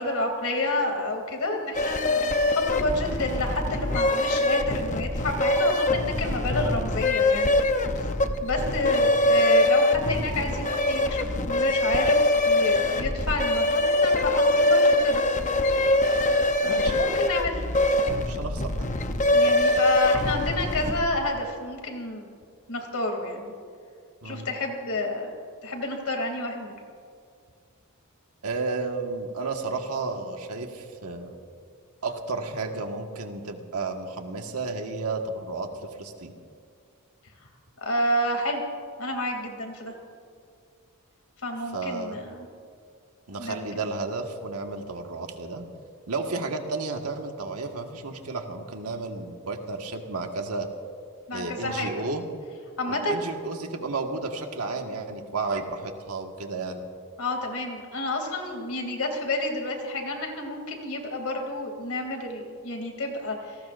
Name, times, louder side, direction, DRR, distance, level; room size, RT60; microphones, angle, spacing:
voice 1, 0.0-7.6 7.9-8.0 8.4-15.2 16.6-17.6 19.3-22.2 22.7-23.5 24.2-25.3 25.6-26.7 37.8-38.6 39.0-39.9 41.4-42.5 43.4-43.6 51.3-52.1 52.8-53.2 57.2-63.6, left 1 dB, 65° left, 3 dB, 2.8 m, -29 dB
sound 1, 1.7-21.2, left 1 dB, 35° left, 0.8 m, -23 dB
voice 2, 8.8-9.2 16.7-17.0 18.3-18.9 24.2-24.5 28.4-31.4 32.0-35.7 36.0-36.3 41.7-42.2 43.3-45.6 46.1-50.7 51.3-52.2 52.9-56.8, right 3 dB, 80° right, 3 dB, 1.6 m, -32 dB
28.5 x 18.5 x 2.6 m, 2.2 s
head